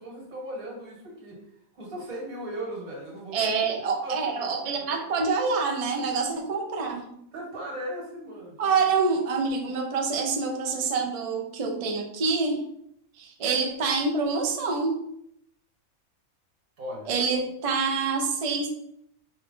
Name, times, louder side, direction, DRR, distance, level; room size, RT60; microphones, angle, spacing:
voice 1, 0.0-1.4 1.7-3.7 4.0-4.5 4.8-5.0 6.5-6.6 7.3-8.8 16.8-17.4, right 1 dB, 80° right, -2 dB, 2.0 m, -38 dB
voice 2, 3.3-7.1 8.6-12.6 13.2-15.0 17.1-18.7, right 4 dB, 50° right, 2 dB, 0.4 m, -26 dB
5.4 x 2.3 x 3.7 m, 0.75 s
omnidirectional pair, 1.5 m